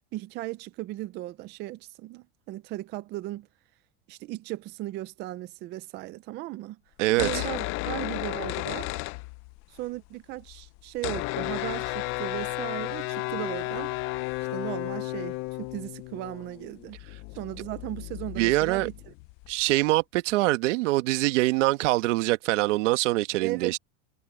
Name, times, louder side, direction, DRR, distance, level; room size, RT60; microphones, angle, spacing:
voice 1, 0.1-3.5 4.1-6.8 7.1-8.9 9.7-13.9 14.5-17.0 17.4-18.9 23.4-23.7, right 17 dB, 30° right, 0.5 m, -36 dB
sound 1, 7.0-9.8 10.0-10.1 10.3-19.7, left 20 dB, 35° left, 0.5 m, -33 dB
voice 2, 7.0-7.4 18.3-18.9 19.5-23.8, right 20 dB, 80° right, 1.4 m, -24 dB
supercardioid pair, 165°, 36 cm